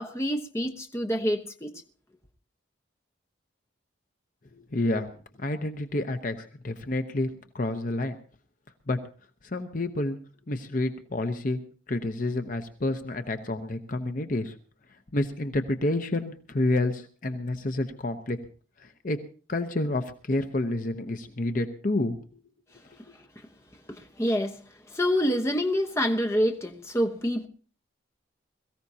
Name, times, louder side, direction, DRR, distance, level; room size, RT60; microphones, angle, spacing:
voice 1, 0.0-1.7 23.9-24.6 24.9-27.5, equal, 15° left, 1.1 m, -27 dB
voice 2, 4.5-5.1 5.4-7.3 7.5-8.2 8.9-9.0 9.4-10.2 10.5-11.6 11.9-14.5 15.1-18.4 18.8-19.2 19.5-22.4, left 2 dB, 45° left, 0.9 m, -29 dB
22.0 x 15.0 x 2.8 m
head